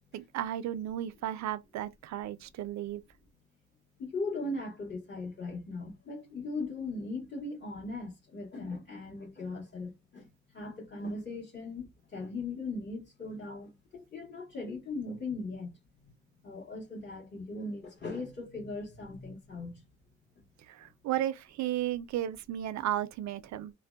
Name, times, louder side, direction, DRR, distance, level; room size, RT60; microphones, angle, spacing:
voice 1, 0.1-3.0 20.7-23.7, right 12 dB, 65° right, 0.4 m, -34 dB
voice 2, 4.0-15.8 16.0-16.1 16.4-19.8 20.3-20.4 20.8-20.9, left 3 dB, 35° left, 1.3 m, -39 dB
2.6 x 2.1 x 2.3 m
cardioid pair, 90°, 30 cm